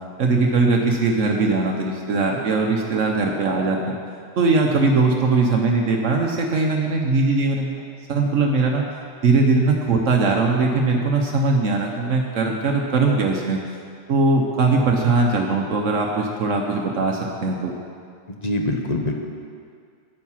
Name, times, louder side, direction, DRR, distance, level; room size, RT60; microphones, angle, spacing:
voice 1, 0.2-4.0 4.4-7.8 8.1-8.8 9.2-13.6 14.1-17.7, right 3 dB, 70° right, 1 dB, 1.2 m, -20 dB
voice 2, 18.3-19.1, left 1 dB, 35° left, 2 dB, 0.9 m, -24 dB
9.8 x 9.3 x 5.7 m, 2.2 s
omnidirectional pair, 1.4 m